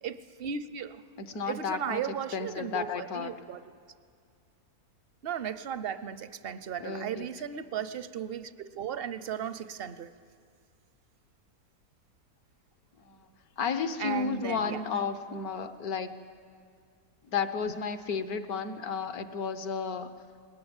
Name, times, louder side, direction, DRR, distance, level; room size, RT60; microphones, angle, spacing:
voice 1, 0.0-1.0 1.5-3.6 5.2-10.1 14.0-14.8, right 8 dB, 55° right, 14 dB, 0.7 m, -36 dB
voice 2, 1.2-2.0 2.3-3.3 6.8-7.3 13.0-13.2 13.6-16.1 17.3-20.1, left 5 dB, 70° left, 10 dB, 1.5 m, -32 dB
21.0 x 19.0 x 8.9 m, 2.2 s
omnidirectional pair, 1.6 m